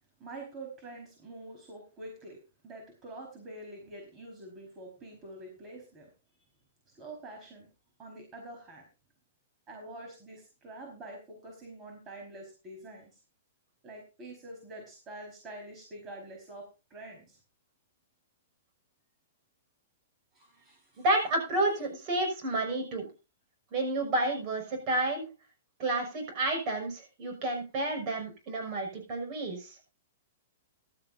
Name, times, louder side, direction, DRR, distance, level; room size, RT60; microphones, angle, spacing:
voice 1, 0.2-6.1 6.9-7.7 8.0-8.8 9.7-13.1 13.8-17.4 20.3-21.0, right 2 dB, 25° right, 0 dB, 4.6 m, -46 dB
voice 2, 21.0-23.1 23.7-25.3 25.8-29.8, right 2 dB, 40° right, 3 dB, 6.0 m, -30 dB
15.5 x 12.5 x 2.7 m, 0.30 s
hypercardioid pair, 135°, 0 cm